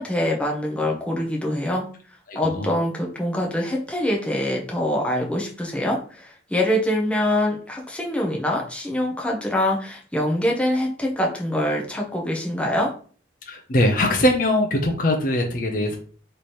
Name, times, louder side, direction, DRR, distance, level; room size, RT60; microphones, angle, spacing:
voice 1, 0.0-1.8 2.3-12.9, left 1 dB, 5° left, -1 dB, 0.8 m, -24 dB
voice 2, 2.3-2.7 13.5-16.0, left 1 dB, 45° left, 2 dB, 0.6 m, -21 dB
3.3 x 3.0 x 4.3 m, 0.43 s
head